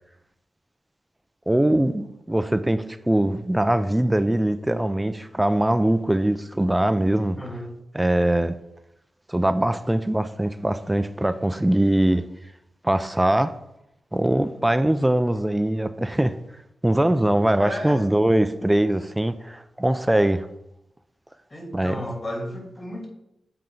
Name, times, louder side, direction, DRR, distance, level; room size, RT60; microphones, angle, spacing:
voice 1, 1.5-7.4 7.9-8.5 9.3-12.2 12.8-13.5 14.1-16.4 16.8-20.5 21.7-22.0, right 1 dB, 10° right, 11 dB, 0.4 m, -22 dB
voice 2, 7.3-7.7 17.6-18.0 21.5-23.1, equal, 35° left, -1 dB, 2.6 m, -33 dB
7.5 x 4.4 x 3.8 m, 0.83 s
cardioid pair, 65°, 0 cm